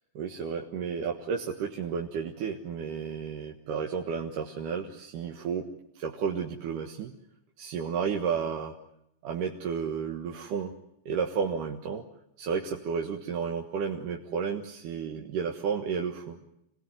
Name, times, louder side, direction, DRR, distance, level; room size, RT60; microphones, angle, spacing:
voice 1, 0.1-5.7 6.0-7.1 7.6-8.7 9.2-10.7 11.1-12.0 12.4-16.4, right 6 dB, 90° right, 1 dB, 3.1 m, -32 dB
27.5 x 19.5 x 9.4 m, 0.79 s
omnidirectional pair, 3.6 m